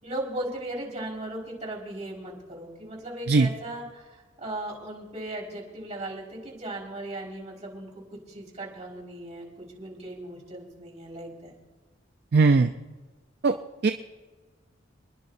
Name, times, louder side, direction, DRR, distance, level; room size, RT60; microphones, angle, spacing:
voice 1, 0.0-11.6, right 1 dB, 35° right, -3 dB, 4.8 m, -37 dB
voice 2, 12.3-12.7 13.4-13.5 13.8-13.9, right 4 dB, 60° right, 7 dB, 0.5 m, -19 dB
29.5 x 10.5 x 2.7 m, 1.3 s
head